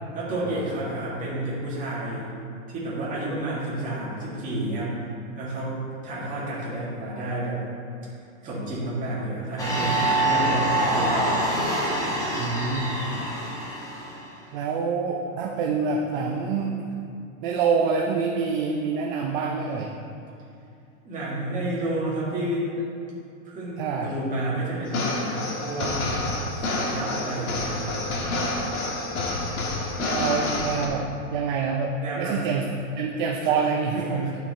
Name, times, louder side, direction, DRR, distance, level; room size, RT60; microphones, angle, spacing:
voice 1, 0.1-2.3 2.7-4.9 5.4-7.6 8.4-11.3 21.0-22.7 23.4-26.0 26.6-28.0 29.4-30.0 32.0-32.4 33.4-33.5 34.0-34.4, right 1 dB, 20° right, -7 dB, 2.1 m, -30 dB
sound 1, 9.6-14.2, right 1 dB, 10° left, 0.9 m, -25 dB
voice 2, 12.4-12.9 14.5-16.9 17.4-19.9 23.8-24.2 30.0-34.4, right 5 dB, 40° right, 0 dB, 0.6 m, -26 dB
sound 2, 24.9-30.9, left 2 dB, 90° left, 1.8 m, -28 dB
10.5 x 5.8 x 4.1 m, 2.6 s
supercardioid pair, 160°, 41 cm